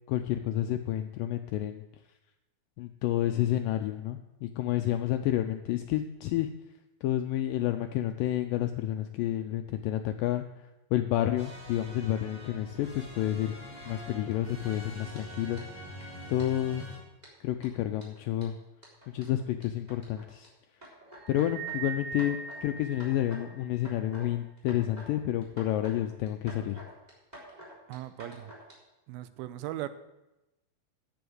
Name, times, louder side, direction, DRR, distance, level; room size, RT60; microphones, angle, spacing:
voice 1, 0.1-1.8 2.8-6.5 7.0-10.4 10.9-13.5 13.9-15.6 16.3-16.9 17.4-18.6 19.1-20.5 21.3-26.8, left 12 dB, 85° left, 7 dB, 2.0 m, -30 dB
superhero fanfare, 11.4-17.0, equal, 30° right, 4.0 m, -44 dB
sound 1, 13.9-14.3 14.7-14.8 15.2-15.3 15.6-15.7 16.0-16.1 16.4-16.8 17.2-20.5 20.8-21.8 22.1-22.6 22.9-23.5 23.7-24.3 24.6-25.1 25.4-26.0 26.3-28.7, equal, 10° right, 3.5 m, -49 dB
sound 2, 21.2-23.9, right 6 dB, 55° right, 2.3 m, -40 dB
voice 2, 27.9-28.5 29.1-29.9, right 14 dB, 80° right, 12 dB, 2.4 m, -38 dB
10.5 x 7.9 x 7.9 m, 0.98 s
omnidirectional pair, 4.4 m